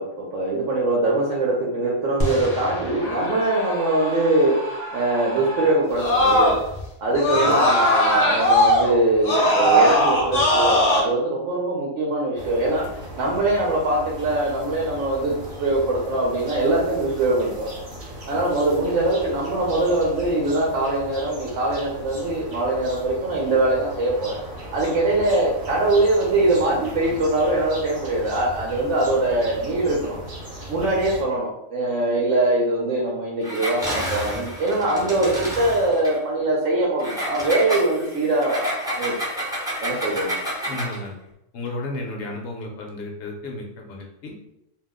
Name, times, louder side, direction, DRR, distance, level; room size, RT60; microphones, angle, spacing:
voice 1, 0.0-4.6 4.9-6.6 7.0-17.7 18.3-24.4 24.7-30.2 30.7-39.1 39.8-40.4 42.2-42.3, right 2 dB, 70° right, -4 dB, 1.0 m, -22 dB
Screaming, 2.2-6.8 7.1-11.0, equal, 35° left, 0.7 m, -21 dB
sound 1, 12.4-31.2, right 1 dB, 45° right, 0.9 m, -37 dB
Engine, 33.4-36.2 37.0-41.1, equal, 5° right, 0.5 m, -30 dB
voice 2, 40.7-41.2 41.5-44.4, left 2 dB, 65° left, 0 dB, 0.9 m, -33 dB
2.6 x 2.0 x 3.5 m, 0.83 s
omnidirectional pair, 1.4 m